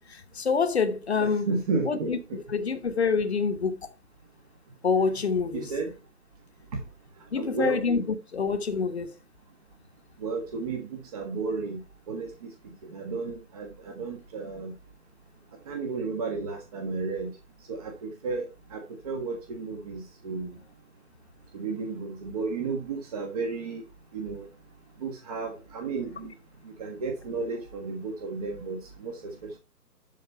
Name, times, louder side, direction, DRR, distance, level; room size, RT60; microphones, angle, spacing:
voice 1, 0.1-1.5 1.8-3.8 4.8-5.7 7.3-9.1, left 5 dB, 40° left, 1.2 m, -26 dB
voice 2, 1.2-2.4 5.5-5.9 6.7-6.8 7.4-7.8 10.2-11.8 12.1-12.5 12.9-14.7 15.7-17.3 17.7-18.4 18.7-20.6 21.5-23.8 24.1-24.5 25.0-26.3 26.8-29.6, right 4 dB, 25° right, 1.4 m, -33 dB
12.0 x 4.2 x 4.4 m
figure-of-eight pair, 150°, 47 cm